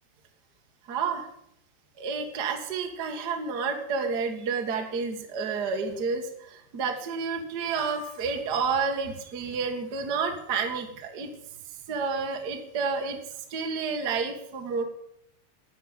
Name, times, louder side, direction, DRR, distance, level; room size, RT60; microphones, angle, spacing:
voice 1, 0.9-1.3 2.0-11.3 11.9-13.2 13.5-14.8, right 5 dB, 65° right, 4 dB, 1.0 m, -30 dB
12.5 x 9.4 x 9.7 m, 0.77 s
omnidirectional pair, 5.2 m